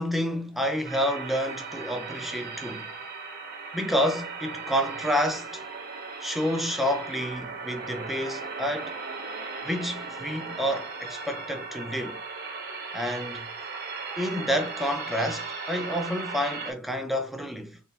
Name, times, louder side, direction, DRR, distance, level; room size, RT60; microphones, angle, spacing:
voice 1, 0.0-2.9 3.7-5.6 6.2-9.0 9.6-12.2 12.9-13.5 14.2-17.8, equal, ahead, 0.5 m, -29 dB
sound 1, 0.8-16.7, right 4 dB, 45° right, 0.9 m, -37 dB
4.3 x 2.3 x 3.4 m
head